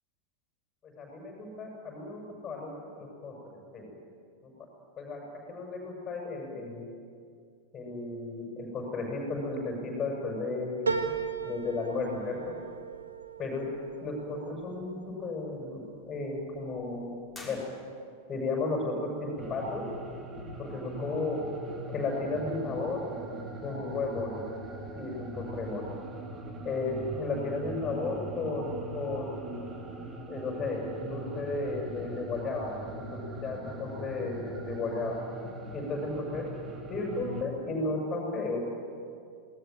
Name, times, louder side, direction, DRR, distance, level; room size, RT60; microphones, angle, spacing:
voice 1, 0.8-3.9 4.4-4.5 5.0-5.2 5.5-6.9 7.7-11.0 11.4-12.5 13.4-13.7 14.0-17.2 17.4-17.6 18.3-19.9 20.6-21.4 21.8-23.1 23.6-24.5 24.9-25.8 26.6-29.7 30.3-35.2 35.7-36.5 36.9-38.6, left 3 dB, 25° left, -1 dB, 7.0 m, -34 dB
sound 1, 10.9-15.6 16.1-16.8 17.2-17.3, right 5 dB, 75° right, 1.7 m, -37 dB
sound 2, 17.3-18.3, left 1 dB, ahead, 6.1 m, -48 dB
sound 3, 19.4-37.4, right 1 dB, 20° right, 2.9 m, -41 dB
27.5 x 19.5 x 9.2 m, 2.3 s
figure-of-eight pair, 90°, 0 cm